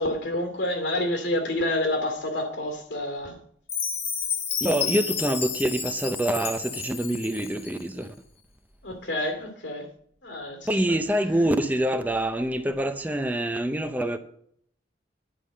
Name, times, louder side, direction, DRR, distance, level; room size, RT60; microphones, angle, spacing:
voice 1, 0.0-3.4 8.8-9.9 10.2-10.7, left 1 dB, 80° left, 2.5 m, -28 dB
Chime, 3.7-7.8, left 6 dB, 35° left, 1.2 m, -31 dB
voice 2, 4.6-8.1 10.7-14.2, right 1 dB, 10° right, 0.5 m, -26 dB
10.0 x 5.5 x 7.5 m
head